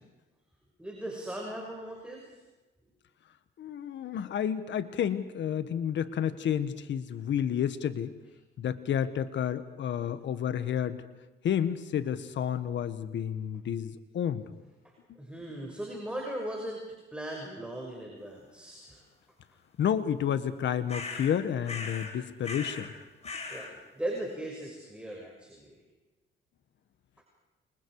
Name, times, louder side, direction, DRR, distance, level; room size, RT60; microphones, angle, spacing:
voice 1, 0.8-2.4 14.8-16.8 17.1-19.0 23.5-25.8 27.2-27.3, right 1 dB, 5° right, -1 dB, 6.1 m, -38 dB
voice 2, 3.6-8.1 8.6-11.0 11.4-14.5 15.1-15.2 19.8-22.9, left 9 dB, 65° left, 11 dB, 1.6 m, -30 dB
sound 1, 20.9-21.3 21.7-22.2 22.4-22.9 23.2-23.7, left 3 dB, 35° left, 4.4 m, -38 dB
29.0 x 25.5 x 4.9 m, 1.1 s
cardioid pair, 90°, 20 cm